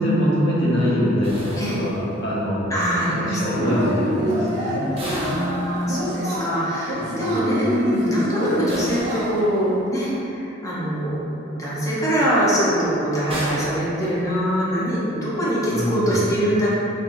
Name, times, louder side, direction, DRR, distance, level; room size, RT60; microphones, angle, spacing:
voice 1, 0.0-4.8 7.0-7.4 15.7-16.2, equal, 65° left, -8 dB, 1.1 m, -24 dB
sound 1, 1.2-2.5 5.0-6.3 8.7-9.8 13.3-14.6, right 1 dB, 30° right, 0.7 m, -34 dB
voice 2, 2.7-3.8 4.2-4.4 5.1-11.2 11.5-16.7, equal, 20° left, -9 dB, 0.9 m, -23 dB
Yell / Cheering, 3.5-9.6, equal, 65° right, 0.8 m, -28 dB
4.2 x 2.9 x 2.6 m, 3.0 s
head